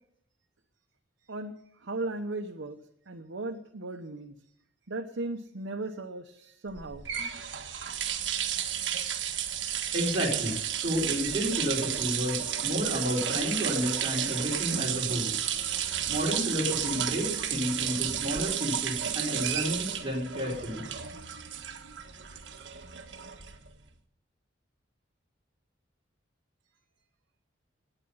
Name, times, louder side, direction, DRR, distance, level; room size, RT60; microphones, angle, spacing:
voice 1, 1.8-2.8 3.1-4.3 4.9-7.1 7.4-7.5, right 2 dB, 90° right, 3 dB, 1.0 m, -36 dB
sound 1, 6.7-23.8, right 9 dB, 70° right, 1.5 m, -32 dB
voice 2, 9.9-15.4 16.1-20.8, equal, 30° right, -3 dB, 4.4 m, -31 dB
19.5 x 9.0 x 5.6 m, 0.70 s
head